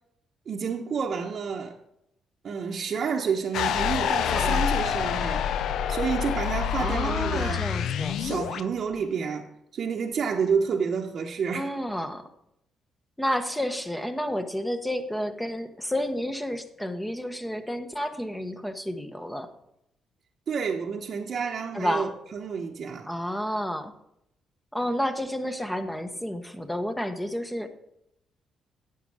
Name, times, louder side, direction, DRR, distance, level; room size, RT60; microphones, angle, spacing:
voice 1, 0.5-1.8 2.4-5.4 5.9-7.6 8.2-9.5 9.7-11.7 20.5-23.1, right 6 dB, 55° right, 0.9 m, -29 dB
sound 1, 3.5-8.6, left 8 dB, 75° left, 0.4 m, -27 dB
voice 2, 4.3-4.7 6.8-8.2 11.5-12.2 13.2-19.5 21.7-22.1 23.1-23.9 24.7-27.8, equal, 5° left, 1.0 m, -30 dB
9.5 x 7.3 x 4.8 m
cardioid pair, 90°, 0 cm